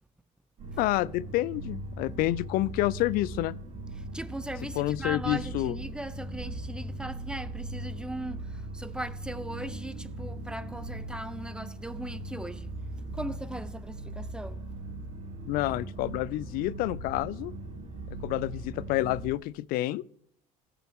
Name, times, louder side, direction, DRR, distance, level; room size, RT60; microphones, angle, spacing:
sound 1, 0.6-19.3, right 2 dB, 50° right, 2.4 m, -39 dB
voice 1, 0.8-3.5 4.8-5.7 15.5-17.5 18.2-20.0, left 16 dB, 65° left, 0.4 m, -28 dB
voice 2, 3.9-12.8 13.1-14.9, right 1 dB, 5° right, 0.5 m, -39 dB
16.0 x 5.9 x 3.6 m
supercardioid pair, 105°, 16 cm